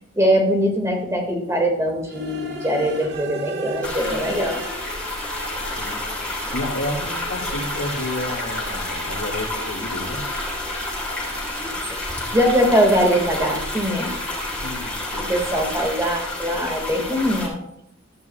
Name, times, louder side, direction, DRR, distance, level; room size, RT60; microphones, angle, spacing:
voice 1, 0.2-4.6 11.6-11.7 12.3-14.1 15.3-17.6, equal, 15° right, 2 dB, 2.0 m, -21 dB
sound 1, 2.1-15.9, right 2 dB, 55° right, 1.6 m, -37 dB
sound 2, 3.8-17.5, left 2 dB, 5° left, 3.7 m, -30 dB
voice 2, 5.5-10.2 14.5-15.4, left 1 dB, 75° left, 2 dB, 2.3 m, -31 dB
14.0 x 11.5 x 2.4 m, 0.77 s
head